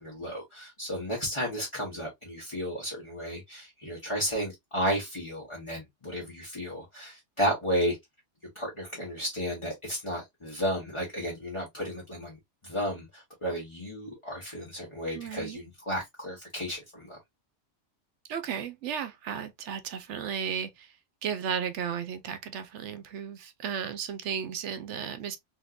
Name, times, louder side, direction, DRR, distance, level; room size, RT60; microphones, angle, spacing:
voice 1, 0.0-8.0 8.5-12.4 12.6-17.2, equal, 25° left, 1.0 m, -33 dB
voice 2, 15.1-15.6 18.3-20.9 21.2-25.4, right 7 dB, 70° right, 0.9 m, -34 dB
3.5 x 2.8 x 2.3 m
omnidirectional pair, 1.3 m